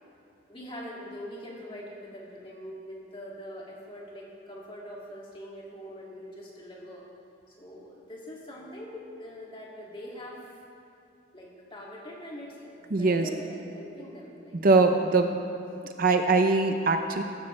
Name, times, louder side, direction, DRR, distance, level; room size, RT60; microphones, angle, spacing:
voice 1, 0.5-7.0 7.5-10.6 11.3-14.7, equal, 25° left, -4 dB, 2.4 m, -43 dB
voice 2, 12.9-13.3 14.6-15.4 15.8-17.2, right 3 dB, 45° right, 6 dB, 0.6 m, -22 dB
14.5 x 14.5 x 3.3 m, 2.7 s
head